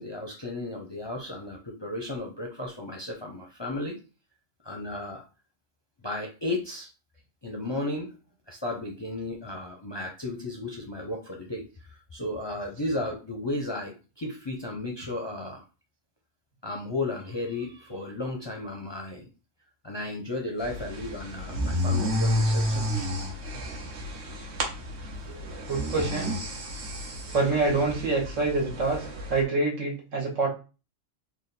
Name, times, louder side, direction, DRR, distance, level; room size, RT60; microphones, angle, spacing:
voice 1, 0.0-4.0 4.6-5.2 6.0-6.9 7.4-8.2 8.5-11.6 12.1-15.6 16.6-19.3 19.8-22.8 25.1-25.3, left 2 dB, 35° left, 1 dB, 0.4 m, -34 dB
sound 1, 20.6-29.4, left 1 dB, 65° right, 1.1 m, -31 dB
voice 2, 25.3-26.4 27.3-30.5, right 3 dB, 90° right, -1 dB, 1.6 m, -26 dB
3.5 x 2.3 x 4.0 m, 0.32 s
omnidirectional pair, 1.3 m